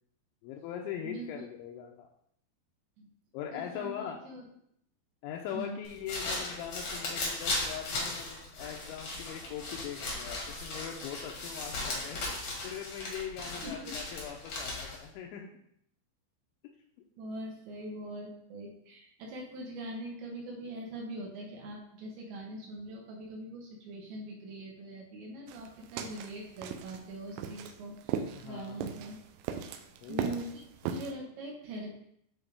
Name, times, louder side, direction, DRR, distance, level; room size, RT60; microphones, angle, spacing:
voice 1, 0.4-2.1 3.3-4.2 5.2-15.5 16.6-16.8 28.4-29.1 30.0-30.4, left 9 dB, 85° left, 1 dB, 2.8 m, -41 dB
voice 2, 1.0-1.4 3.0-3.1 3.5-4.4 5.5-5.8 13.6-13.9 17.2-29.2 30.1-31.9, right 1 dB, 70° right, -2 dB, 3.2 m, -42 dB
sound 1, 5.8-15.1, left 2 dB, 65° left, 1.5 m, -37 dB
sound 2, 25.5-31.1, right 8 dB, 85° right, 3.1 m, -38 dB
9.9 x 3.9 x 3.5 m, 0.72 s
omnidirectional pair, 5.7 m